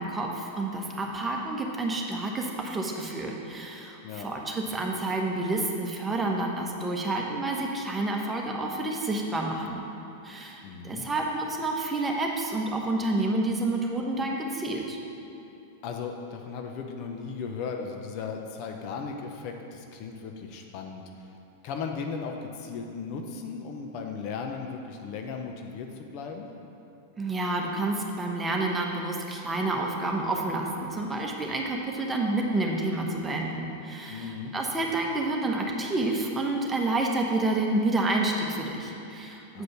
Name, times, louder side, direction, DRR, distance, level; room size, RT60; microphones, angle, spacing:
voice 1, 0.0-9.8 10.2-15.0 27.2-39.6, right 2 dB, 15° right, 0 dB, 1.1 m, -29 dB
voice 2, 10.6-11.1 15.8-21.3 21.6-26.5 34.1-34.5 39.5-39.6, left 5 dB, 50° left, 3 dB, 0.8 m, -36 dB
7.9 x 5.2 x 6.0 m, 2.9 s
hypercardioid pair, 95°, 0 cm